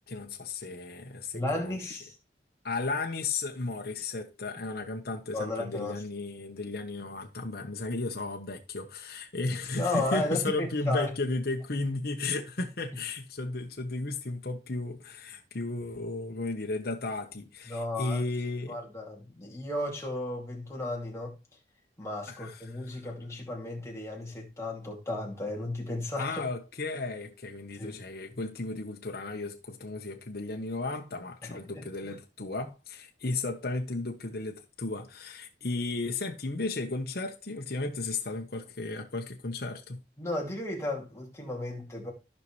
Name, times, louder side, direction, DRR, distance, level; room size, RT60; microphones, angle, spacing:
voice 1, 0.1-1.9 2.6-18.8 22.3-23.0 26.2-40.0, left 3 dB, 55° left, 1.0 m, -34 dB
voice 2, 1.3-2.1 5.3-6.0 9.8-11.1 17.7-18.2 18.7-21.4 22.0-26.4 27.8-28.0 31.4-32.1 40.2-42.1, left 2 dB, 15° left, 2.5 m, -34 dB
14.5 x 5.4 x 3.2 m
head